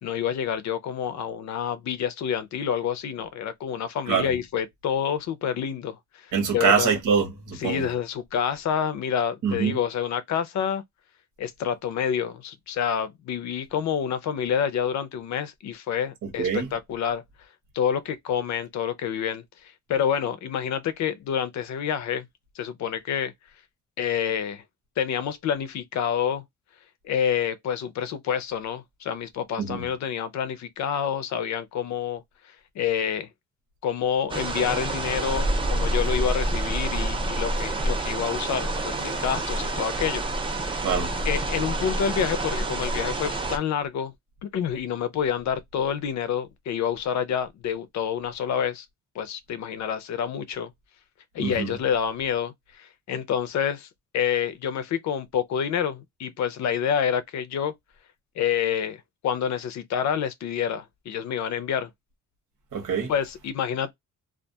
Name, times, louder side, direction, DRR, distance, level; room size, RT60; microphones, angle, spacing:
voice 1, 0.0-6.3 6.5-6.9 7.6-10.8 11.4-17.2 17.7-19.4 19.9-22.3 22.6-23.3 24.0-24.6 25.0-26.4 27.0-32.2 32.8-33.3 33.8-40.2 40.6-40.8 41.2-44.1 44.5-48.8 49.2-50.7 51.3-53.9 54.1-57.7 58.4-61.9 63.1-63.9, left 8 dB, 65° left, 0.5 m, -28 dB
voice 2, 6.3-7.9 9.4-9.8 16.4-16.6 29.6-29.9 40.8-41.1 51.4-51.7 62.7-63.1, right 6 dB, 85° right, 1.1 m, -24 dB
sound 1, 34.3-43.6, right 1 dB, 15° right, 0.4 m, -27 dB
2.4 x 2.2 x 2.6 m
cardioid pair, 160°, 31 cm